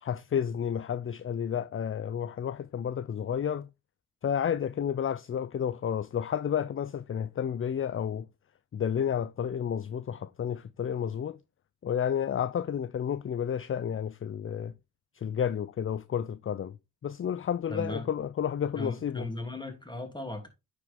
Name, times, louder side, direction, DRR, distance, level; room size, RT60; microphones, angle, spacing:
voice 1, 0.0-3.7 4.2-8.3 8.7-11.4 11.8-14.7 15.1-16.8 17.0-19.3, left 8 dB, 30° left, 0.5 m, -31 dB
voice 2, 17.7-18.1 18.7-20.5, left 1 dB, 10° left, 2.9 m, -37 dB
9.3 x 4.9 x 3.6 m
supercardioid pair, 55°, 43 cm